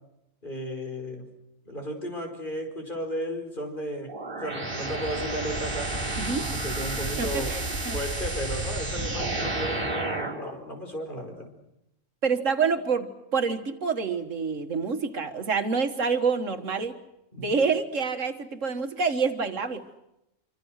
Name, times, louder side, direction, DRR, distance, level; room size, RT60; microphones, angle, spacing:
voice 1, 0.4-1.3 1.7-7.6 7.9-11.5 17.3-17.6, equal, 40° left, 3 dB, 5.4 m, -34 dB
sound 1, 4.1-10.5, right 2 dB, 45° right, 3.4 m, -31 dB
voice 2, 6.2-6.5 7.2-8.0 12.2-16.9 17.4-19.8, right 5 dB, 75° right, 7 dB, 1.9 m, -27 dB
27.5 x 25.0 x 6.5 m, 0.86 s
omnidirectional pair, 1.3 m